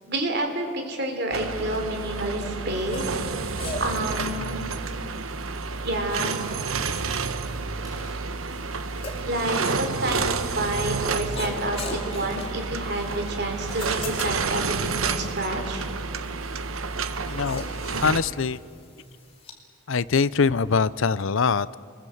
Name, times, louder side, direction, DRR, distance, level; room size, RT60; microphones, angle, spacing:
voice 1, 0.1-3.2 3.8-4.7 5.8-6.4 9.2-15.9, right 1 dB, 50° right, 4 dB, 3.6 m, -29 dB
sound 1, 1.3-18.2, right 4 dB, 85° right, 1.1 m, -30 dB
sound 2, 2.7-19.5, left 2 dB, 30° left, 2.6 m, -42 dB
sound 3, 7.8-8.2 10.9-11.4 12.1-12.4 13.6-13.9 14.4-15.3, right 1 dB, 20° right, 6.9 m, -48 dB
voice 2, 17.3-17.6 18.0-18.6 19.9-21.8, left 5 dB, 75° left, 17 dB, 0.6 m, -23 dB
28.0 x 21.0 x 7.9 m, 2.2 s
head